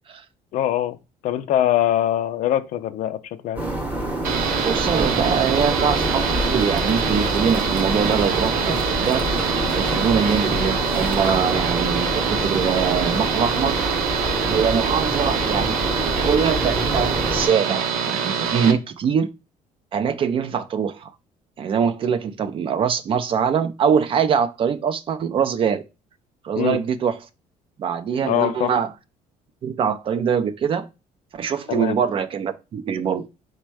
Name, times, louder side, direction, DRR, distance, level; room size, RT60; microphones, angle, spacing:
voice 1, 0.5-1.0 1.2-3.6 26.6-26.8 28.2-28.7 31.7-32.0, left 12 dB, 60° left, 0.4 m, -22 dB
sound 1, 3.6-17.5, right 1 dB, 10° right, 0.9 m, -26 dB
sound 2, 4.2-18.7, right 7 dB, 85° right, 0.8 m, -25 dB
voice 2, 4.6-9.3 9.7-13.8 14.5-15.8 16.2-19.3 19.9-21.1 21.6-25.8 26.4-27.2 27.8-28.9 29.6-30.9 31.3-33.3, right 7 dB, 40° right, 0.4 m, -23 dB
4.2 x 2.2 x 4.6 m
cardioid pair, 130°, 14 cm